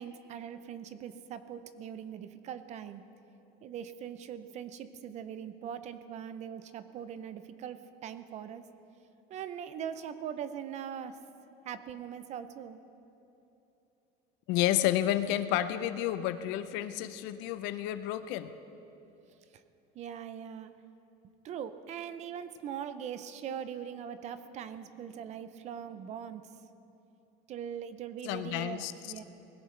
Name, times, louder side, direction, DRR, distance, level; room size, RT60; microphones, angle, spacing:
voice 1, 0.0-3.0 3.6-8.6 9.3-11.2 11.7-12.8 19.5-19.6 19.9-20.7 21.4-26.4 27.5-29.2, right 8 dB, 35° right, 12 dB, 0.6 m, -41 dB
voice 2, 14.5-18.5 28.2-28.9, left 12 dB, 70° left, 11 dB, 0.7 m, -30 dB
20.5 x 16.5 x 3.3 m, 3.0 s
cardioid pair, 165°, 19 cm